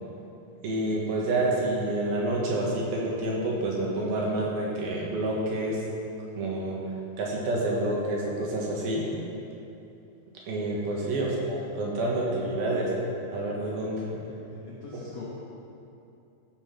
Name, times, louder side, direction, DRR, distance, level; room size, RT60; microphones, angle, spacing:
voice 1, 0.6-5.8 6.4-6.8 7.2-9.0 10.5-12.9 13.3-14.0 14.9-15.0, right 1 dB, 65° right, -3 dB, 3.1 m, -28 dB
voice 2, 11.0-11.3 14.1-15.3, left 4 dB, 70° left, -6 dB, 1.7 m, -45 dB
15.0 x 5.7 x 5.8 m, 2.7 s
omnidirectional pair, 5.0 m